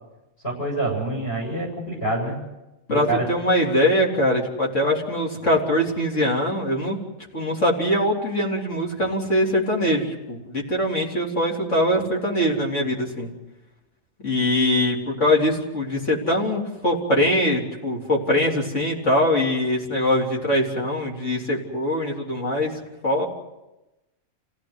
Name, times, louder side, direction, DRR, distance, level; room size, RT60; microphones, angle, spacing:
voice 1, 0.4-2.4 3.1-3.3, right 2 dB, 55° left, 0 dB, 8.5 m, -26 dB
voice 2, 2.9-7.0 7.3-13.3 14.2-22.7 23.0-23.3, left 1 dB, 70° left, -2 dB, 4.0 m, -22 dB
27.0 x 17.0 x 8.1 m, 1.0 s
omnidirectional pair, 1.3 m